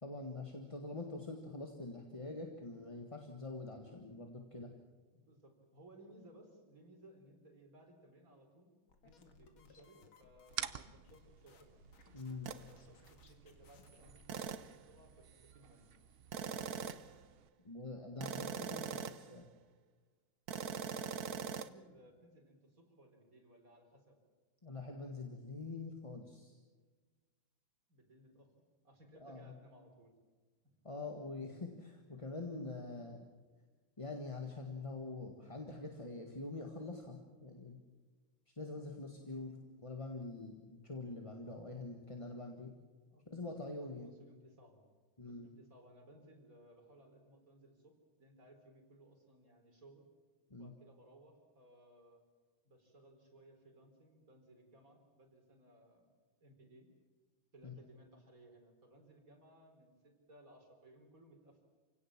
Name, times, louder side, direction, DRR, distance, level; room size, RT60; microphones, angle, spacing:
voice 1, 0.0-4.7 12.1-12.5 17.6-19.5 24.6-26.6 29.2-29.5 30.8-33.2 34.0-37.8 38.5-39.5 39.8-42.7 43.3-44.1 45.2-45.5 50.5-50.7 57.6-57.7, left 3 dB, 15° left, 3 dB, 1.6 m, -45 dB
voice 2, 5.1-8.7 9.0-11.7 12.4-15.9 18.1-19.0 20.8-24.2 27.9-30.1 39.2-39.6 43.1-43.2 43.8-44.8 45.2-50.0 50.6-52.2 52.6-56.1 56.4-56.9 57.5-61.6, right 1 dB, 40° right, 3 dB, 4.3 m, -61 dB
sound 1, 8.9-14.6, left 4 dB, 80° left, 2.8 m, -64 dB
sound 2, 10.5-17.5, right 7 dB, 85° right, 0.5 m, -50 dB
sound 3, 12.5-12.7 14.3-14.8 16.3-17.2 18.2-19.3 20.5-21.7, right 7 dB, 60° right, 1.2 m, -41 dB
28.0 x 17.0 x 7.4 m, 1.4 s
omnidirectional pair, 2.2 m